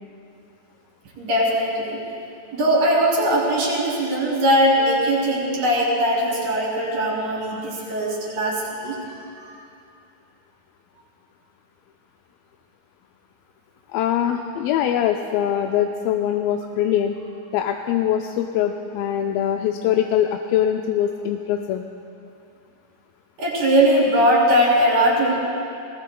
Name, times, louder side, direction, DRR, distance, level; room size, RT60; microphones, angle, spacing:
voice 1, 1.2-2.0 2.5-9.1 9.4-9.6 23.4-25.4, equal, 60° right, -6 dB, 5.6 m, -20 dB
voice 2, 13.9-17.2 17.5-21.8, left 10 dB, 80° left, 4 dB, 2.2 m, -22 dB
20.0 x 19.5 x 2.3 m, 2.6 s
omnidirectional pair, 4.4 m